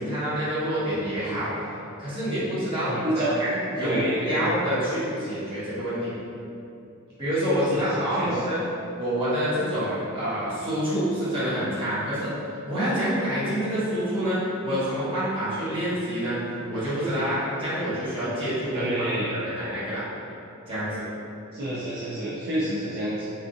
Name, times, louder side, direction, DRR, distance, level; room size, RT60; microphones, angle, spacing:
voice 1, 0.0-1.7 2.0-6.2 7.2-8.6 8.9-12.3 12.6-16.4 16.7-20.0 20.7-21.0, equal, 25° right, -13 dB, 1.2 m, -27 dB
voice 2, 2.9-3.4 3.8-4.5 7.7-8.4 18.7-19.3 21.5-23.3, right 1 dB, 50° right, -9 dB, 0.4 m, -29 dB
3.4 x 2.6 x 2.5 m, 2.7 s
head